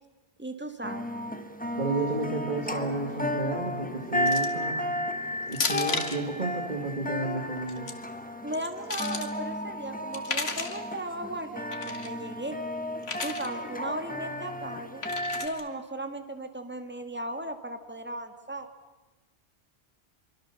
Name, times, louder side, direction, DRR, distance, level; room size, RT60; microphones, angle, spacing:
voice 1, 0.4-1.1 8.4-12.6 13.2-15.0 15.3-18.7, right 1 dB, 10° right, 6 dB, 1.7 m, -36 dB
sound 1, 0.8-15.5, left 1 dB, 5° left, 1.1 m, -34 dB
voice 2, 1.8-4.9 5.4-7.9, right 2 dB, 40° right, 1 dB, 2.4 m, -32 dB
sound 2, 4.3-4.6 5.5-6.2 7.6-7.9 8.5-9.3 10.1-10.8 11.7-12.1 13.0-13.5 15.0-15.6, left 4 dB, 75° left, 2.0 m, -33 dB
25.0 x 24.0 x 7.0 m, 1.2 s
omnidirectional pair, 1.2 m